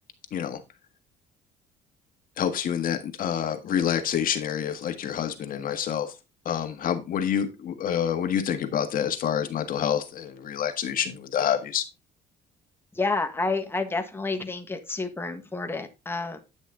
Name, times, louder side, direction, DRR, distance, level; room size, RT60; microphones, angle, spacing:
voice 1, 0.3-0.6 2.4-6.1 6.4-11.8, left 9 dB, 55° left, 1.6 m, -27 dB
voice 2, 12.9-16.4, left 3 dB, 15° left, 1.5 m, -29 dB
9.7 x 6.3 x 3.8 m
cardioid pair, 110°, 17 cm